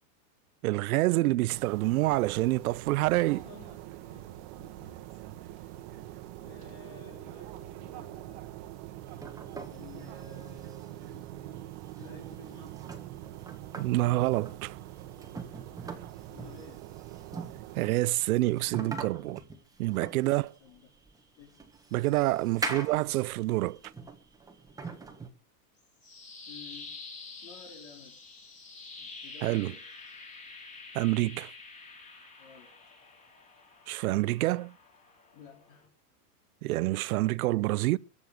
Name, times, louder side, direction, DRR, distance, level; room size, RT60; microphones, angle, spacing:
voice 1, 0.6-3.4 13.8-14.8 17.8-19.4 19.8-20.5 21.9-23.8 29.4-29.7 30.9-31.5 33.9-34.7 36.6-38.0, right 18 dB, 65° right, 0.6 m, -27 dB
sound 1, 1.5-17.9, right 14 dB, 45° right, 1.6 m, -44 dB
voice 2, 3.3-5.1 5.4-5.8 6.0-6.2 6.4-8.5 9.7-11.7 12.0-12.8 16.3-16.9 20.2-20.9 21.4-21.7 22.0-23.0 26.5-27.0 27.4-28.2 29.0-29.8 32.4-32.7 35.3-35.9, left 6 dB, 50° left, 4.6 m, -53 dB
sound 2, 9.1-25.3, right 3 dB, 5° right, 1.5 m, -43 dB
sound 3, 25.8-35.9, left 3 dB, 15° left, 3.6 m, -48 dB
22.0 x 7.3 x 6.8 m
supercardioid pair, 140°, 47 cm